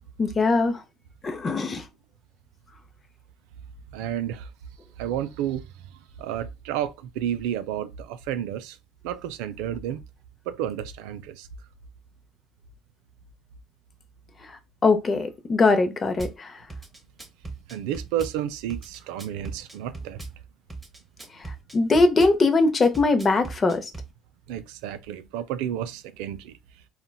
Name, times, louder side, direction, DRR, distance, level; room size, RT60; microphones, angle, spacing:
voice 1, 0.2-0.8 1.2-1.8 14.8-16.6 21.7-23.9, left 3 dB, 30° left, 0.5 m, -21 dB
voice 2, 3.9-4.5 5.0-5.7 6.2-8.8 9.0-10.0 10.5-11.5 17.7-20.2 24.5-26.6, right 10 dB, 80° right, 0.3 m, -31 dB
Drum kit / Bass drum, 16.2-16.4 16.7-18.4 18.7-20.4 20.7-22.4 22.8-24.1, right 3 dB, 10° right, 0.6 m, -38 dB
3.8 x 2.1 x 2.2 m
supercardioid pair, 100°, 0 cm